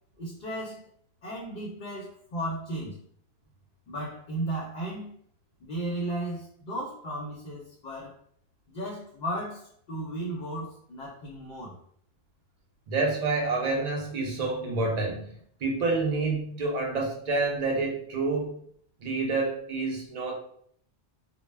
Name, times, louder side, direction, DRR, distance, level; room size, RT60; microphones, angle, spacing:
voice 1, 0.2-0.8 1.2-3.0 3.9-5.1 5.6-8.1 8.7-11.8, right 1 dB, 55° left, -3 dB, 0.6 m, -35 dB
voice 2, 12.9-15.3 15.6-18.6 19.0-20.3, right 3 dB, 50° right, 0 dB, 0.5 m, -28 dB
2.1 x 2.0 x 3.2 m, 0.64 s
omnidirectional pair, 1.1 m